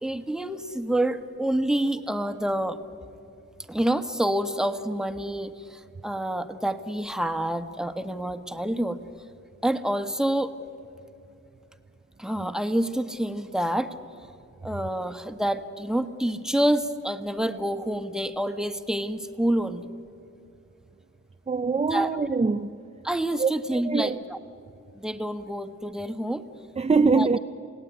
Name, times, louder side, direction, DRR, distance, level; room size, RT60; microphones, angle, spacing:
voice 1, 0.0-2.8 3.7-9.0 9.6-10.5 12.2-13.9 14.6-19.9 21.9-22.1 23.0-24.4 24.9-26.5 27.1-27.4, right 1 dB, ahead, 1.4 m, -27 dB
voice 2, 21.5-22.7 23.4-24.2 26.8-27.4, right 4 dB, 20° right, 0.6 m, -23 dB
28.5 x 17.5 x 9.3 m
cardioid pair, 70°, 30 cm